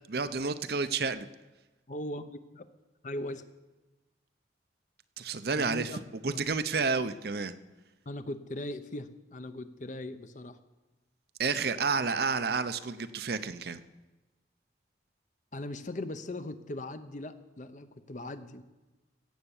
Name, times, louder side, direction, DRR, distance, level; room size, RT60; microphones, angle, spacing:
voice 1, 0.1-1.3 5.2-5.9 6.2-7.5 11.4-13.8, right 4 dB, 55° right, 12 dB, 0.6 m, -30 dB
voice 2, 1.9-2.7 3.0-3.4 5.5-6.4 8.1-10.6 15.5-18.6, left 1 dB, 40° left, 11 dB, 0.7 m, -39 dB
16.5 x 7.9 x 7.2 m, 1.1 s
head